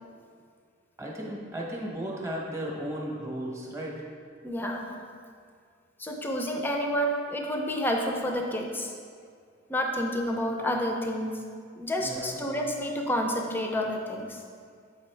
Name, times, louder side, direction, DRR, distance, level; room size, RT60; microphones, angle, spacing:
voice 1, 1.0-4.0 12.0-12.4, right 1 dB, 15° right, -2 dB, 0.9 m, -35 dB
voice 2, 4.4-4.9 6.0-8.9 9.7-11.4 11.8-14.4, equal, 10° left, 2 dB, 0.5 m, -29 dB
7.1 x 4.9 x 3.3 m, 2.2 s
head